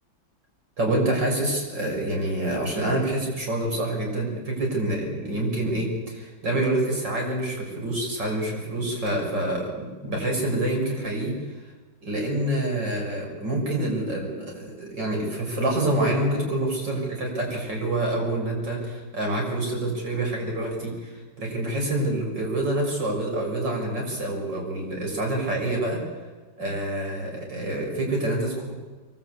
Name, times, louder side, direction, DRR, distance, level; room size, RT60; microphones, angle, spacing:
voice 1, 0.8-11.4 12.0-26.0 26.6-28.7, right 1 dB, 60° right, 0 dB, 7.4 m, -27 dB
24.0 x 23.5 x 8.6 m, 1.3 s
omnidirectional pair, 2.1 m